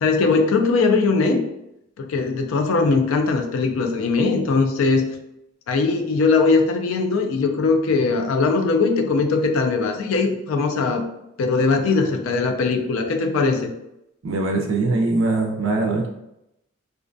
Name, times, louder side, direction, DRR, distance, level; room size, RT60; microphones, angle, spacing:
voice 1, 0.0-1.4 2.0-5.1 5.7-11.0 11.4-13.7, left 4 dB, 90° left, 5 dB, 0.4 m, -20 dB
voice 2, 14.2-16.1, right 3 dB, 75° right, 2 dB, 0.4 m, -21 dB
2.4 x 2.2 x 2.5 m, 0.84 s
head